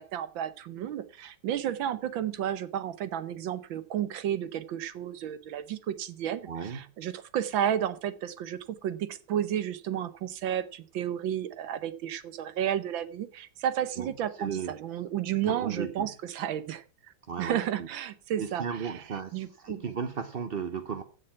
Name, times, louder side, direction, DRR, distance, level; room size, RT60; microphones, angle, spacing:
voice 1, 0.0-16.8 17.4-19.8, right 10 dB, 70° right, 14 dB, 1.6 m, -32 dB
voice 2, 6.5-6.8 14.0-14.1 14.4-14.7 15.4-16.1 17.3-17.6 18.4-19.3 19.6-21.0, right 6 dB, 55° right, 9 dB, 0.6 m, -34 dB
15.0 x 6.8 x 5.7 m, 0.36 s
omnidirectional pair, 2.3 m